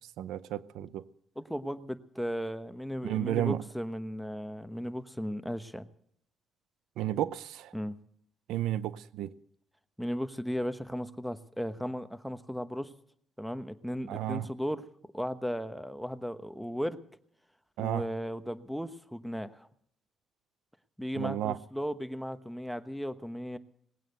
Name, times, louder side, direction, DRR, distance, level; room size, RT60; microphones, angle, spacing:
voice 1, 0.2-1.0 3.0-3.6 7.0-7.7 8.5-9.3 14.1-14.5 17.8-18.0 21.2-21.6, right 12 dB, 85° right, 0.6 m, -32 dB
voice 2, 1.4-5.9 7.7-8.0 10.0-12.9 13.4-14.9 15.1-17.0 17.8-19.7 21.0-23.6, equal, ahead, 1.1 m, -36 dB
19.0 x 9.1 x 7.8 m
cardioid pair, 90°, 0 cm